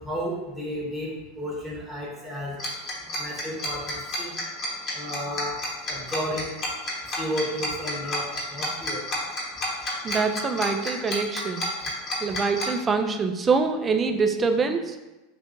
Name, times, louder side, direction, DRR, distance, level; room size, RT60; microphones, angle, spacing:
voice 1, 0.0-2.5 3.2-4.3 4.9-5.6 5.9-6.5 7.1-9.0, equal, 10° left, -4 dB, 0.9 m, -32 dB
Tick-tock, 2.6-12.7, left 1 dB, 35° left, 0.9 m, -30 dB
voice 2, 10.0-11.7 12.2-15.0, right 4 dB, 25° right, 6 dB, 0.3 m, -24 dB
2.5 x 2.4 x 3.8 m, 1.1 s
figure-of-eight pair, 80°, 0 cm